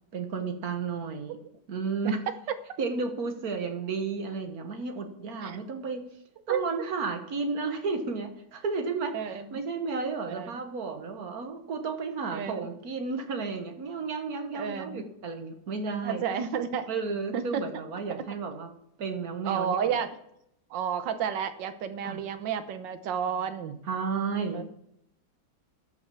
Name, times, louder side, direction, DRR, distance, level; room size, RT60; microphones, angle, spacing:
voice 1, 0.1-1.4 1.7-2.2 2.8-6.0 6.5-16.2 16.9-18.7 19.0-19.9 22.0-22.2 23.9-24.7, right 4 dB, 50° right, 5 dB, 1.7 m, -32 dB
voice 2, 6.5-6.9 9.1-9.6 10.3-10.5 12.3-12.7 14.5-15.0 16.0-16.9 17.3-17.7 19.4-20.2 20.7-23.8 24.5-24.6, right 7 dB, 70° right, 10 dB, 1.5 m, -31 dB
13.5 x 5.9 x 7.0 m, 0.78 s
omnidirectional pair, 2.2 m